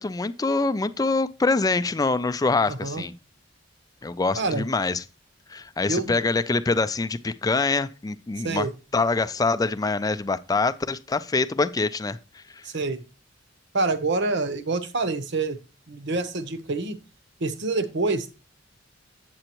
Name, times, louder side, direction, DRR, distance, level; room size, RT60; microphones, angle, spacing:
voice 1, 0.0-3.1 4.0-5.0 5.5-8.7 8.9-12.6, left 3 dB, 20° left, 0.4 m, -25 dB
voice 2, 2.7-3.1 4.4-4.6 5.9-6.2 8.4-8.7 12.6-13.0 13.7-15.6 15.9-17.0 17.4-18.3, right 3 dB, 65° right, 0.9 m, -26 dB
8.7 x 7.8 x 3.0 m
head